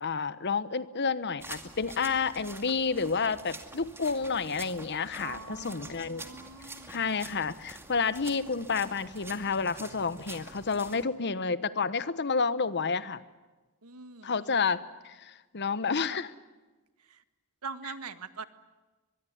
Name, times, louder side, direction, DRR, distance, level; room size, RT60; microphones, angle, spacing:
voice 1, 0.0-6.2 6.9-13.2 14.2-16.3, left 5 dB, 50° left, 15 dB, 1.1 m, -30 dB
sound 1, 1.4-11.0, right 2 dB, 10° right, 2.4 m, -47 dB
voice 2, 5.2-6.9 13.8-14.6 17.1-17.2 17.6-18.4, right 4 dB, 90° right, 11 dB, 1.6 m, -43 dB
23.5 x 22.5 x 9.5 m, 1.2 s
head